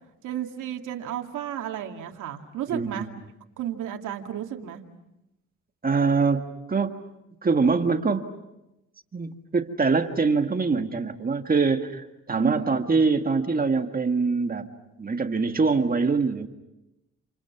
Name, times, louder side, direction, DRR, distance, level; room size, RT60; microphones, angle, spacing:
voice 1, 0.2-3.1 3.6-4.8 12.3-12.6, right 11 dB, 85° right, 3 dB, 2.4 m, -33 dB
voice 2, 2.7-3.1 5.8-7.0 7.4-8.3 9.1-14.7 15.0-16.5, right 4 dB, 30° right, 6 dB, 1.9 m, -24 dB
29.0 x 28.5 x 6.0 m, 0.93 s
cardioid pair, 90°, 30 cm